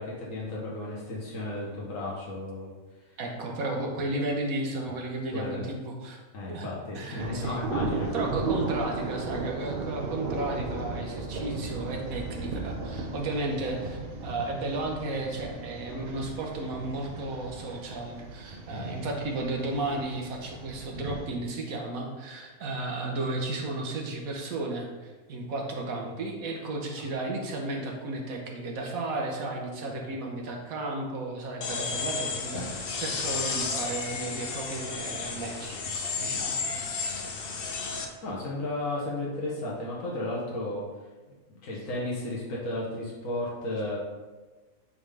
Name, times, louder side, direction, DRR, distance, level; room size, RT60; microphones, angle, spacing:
voice 1, 0.0-2.7 5.3-5.6 6.3-8.1 10.7-10.9 18.7-18.9 29.8-30.2 38.2-40.8 41.5-44.0, left 2 dB, 75° left, -5 dB, 1.5 m, -34 dB
voice 2, 3.2-6.2 6.5-6.7 6.9-7.6 8.1-35.8 36.2-36.7, right 2 dB, 85° right, 1 dB, 1.5 m, -33 dB
sound 1, 7.2-21.3, right 3 dB, 55° right, 0.8 m, -35 dB
sound 2, 31.6-38.1, left 4 dB, 50° left, 0.8 m, -32 dB
8.6 x 3.8 x 3.4 m, 1.3 s
omnidirectional pair, 1.4 m